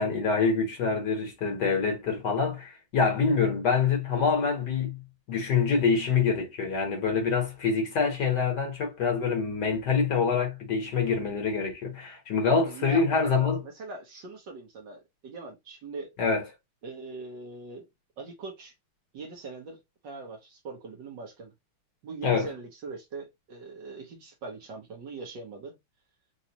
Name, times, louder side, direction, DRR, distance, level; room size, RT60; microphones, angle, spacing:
voice 1, 0.0-5.0 5.3-13.6 16.2-16.5 22.2-22.5, left 5 dB, 55° left, 1.5 m, -26 dB
voice 2, 12.7-16.2 16.8-17.9 18.2-18.7 19.1-21.5 22.0-25.8, right 3 dB, 65° right, 1.5 m, -41 dB
4.0 x 2.3 x 2.7 m
omnidirectional pair, 2.4 m